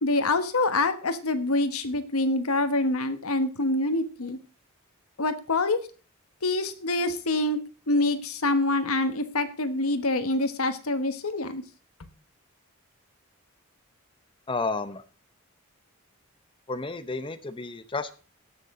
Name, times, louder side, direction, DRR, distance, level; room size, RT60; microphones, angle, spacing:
voice 1, 0.0-4.4 5.2-5.8 6.4-11.6, left 2 dB, 85° left, 10 dB, 1.3 m, -26 dB
voice 2, 14.5-15.0 16.7-18.1, left 3 dB, 25° left, 10 dB, 0.7 m, -31 dB
17.5 x 6.8 x 3.7 m, 0.36 s
head